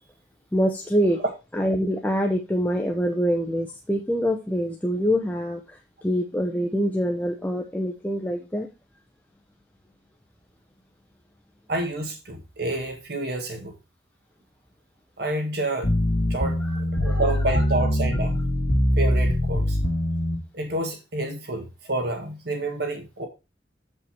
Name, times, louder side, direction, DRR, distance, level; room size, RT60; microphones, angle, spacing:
voice 1, 0.5-1.2 1.5-8.7 16.6-17.2, equal, 10° left, 0.8 m, -25 dB
voice 2, 11.7-13.7 15.2-15.9 16.3-16.6 16.9-18.4 19.0-19.8 20.5-23.3, right 2 dB, 65° right, 1.8 m, -29 dB
sound 1, 15.8-20.4, left 1 dB, 80° left, 2.0 m, -23 dB
7.9 x 5.4 x 4.4 m
head